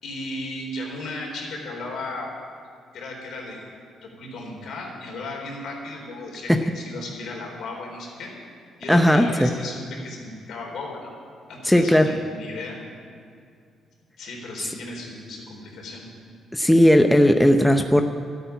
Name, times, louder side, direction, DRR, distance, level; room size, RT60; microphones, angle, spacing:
voice 1, 0.0-2.3 2.9-3.7 4.0-8.3 8.8-11.1 11.5-12.8 14.2-16.1, left 2 dB, 70° left, 0 dB, 4.0 m, -35 dB
voice 2, 8.9-9.5 11.7-12.1 16.5-18.0, equal, 5° left, 6 dB, 0.7 m, -16 dB
12.5 x 9.4 x 9.2 m, 2.3 s
cardioid pair, 90°, 0 cm